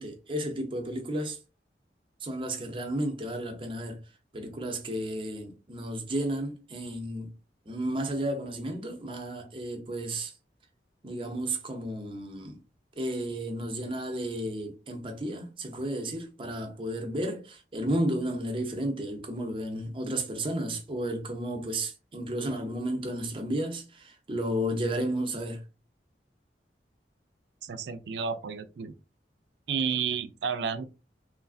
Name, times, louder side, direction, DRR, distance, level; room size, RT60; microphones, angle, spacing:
voice 1, 0.0-1.4 2.2-4.0 4.3-7.3 7.7-10.3 11.0-12.6 13.0-25.6, right 1 dB, 30° right, 0.6 m, -32 dB
voice 2, 27.6-28.9 29.7-30.8, right 6 dB, 75° right, 0.4 m, -31 dB
3.1 x 2.4 x 2.4 m
head